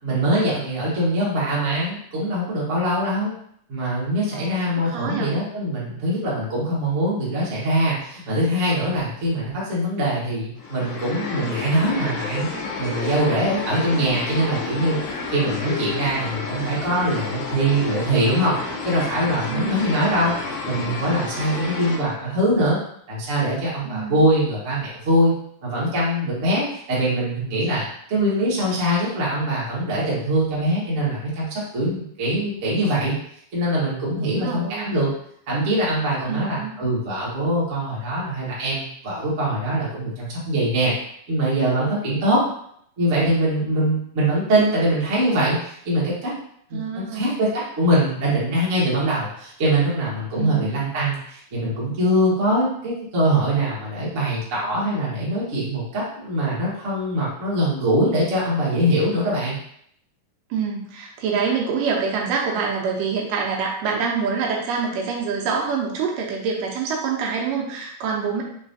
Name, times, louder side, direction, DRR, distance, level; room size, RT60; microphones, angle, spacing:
voice 1, 0.0-3.3 3.7-12.5 12.8-15.0 15.3-18.6 18.8-20.3 20.6-22.8 23.1-25.3 25.6-31.5 31.7-33.1 33.5-35.1 35.5-40.9 41.3-42.4 43.0-46.3 46.7-59.5, right 1 dB, 50° right, -7 dB, 0.9 m, -23 dB
voice 2, 4.8-5.4 19.5-19.9 23.8-24.2 34.2-34.9 36.3-36.7 46.7-47.4 50.4-50.8 60.5-68.4, right 5 dB, 80° right, -1 dB, 2.3 m, -26 dB
sound 1, 10.6-22.0, left 4 dB, 70° left, 2.0 m, -30 dB
5.4 x 3.2 x 2.7 m, 0.68 s
omnidirectional pair, 3.9 m